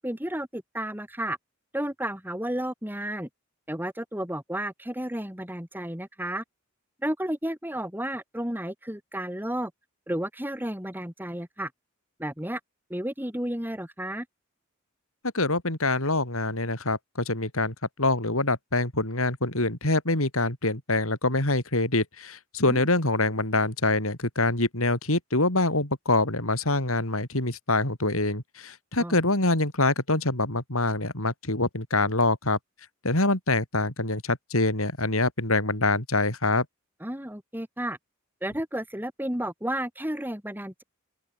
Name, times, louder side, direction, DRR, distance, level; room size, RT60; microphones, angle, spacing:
voice 1, 0.0-1.4 1.7-3.3 3.7-6.4 7.0-9.7 10.1-11.7 12.2-12.6 12.9-14.3 22.7-22.9 29.0-29.2 37.0-38.0 38.4-40.8, right 1 dB, 10° right, 4.0 m, -32 dB
voice 2, 15.3-17.0 17.3-32.6 33.0-36.6, left 2 dB, 75° left, 5.8 m, -25 dB
open air
head